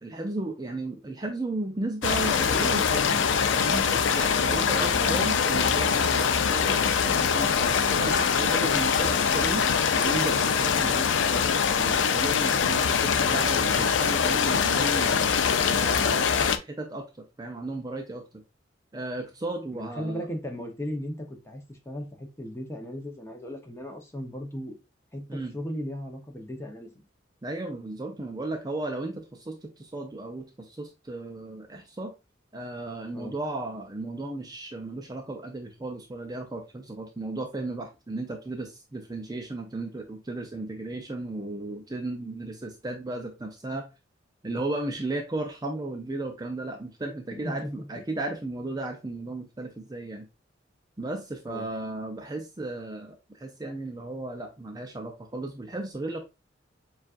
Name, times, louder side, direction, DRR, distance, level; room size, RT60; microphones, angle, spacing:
voice 1, 0.0-9.6 10.0-11.4 11.7-15.1 15.7-17.0 17.4-18.4 18.9-20.3 25.3-25.5 27.4-32.1 32.5-43.9 44.4-50.3 51.0-56.2, right 2 dB, 20° right, 3 dB, 0.5 m, -35 dB
sound 1, 2.0-16.6, left 6 dB, 75° left, 0.4 m, -23 dB
voice 2, 4.4-5.1 19.7-24.7 25.1-26.9 33.1-33.3 47.3-47.9 51.5-51.7, equal, 15° left, 2 dB, 0.8 m, -37 dB
7.1 x 2.4 x 2.5 m, 0.26 s
head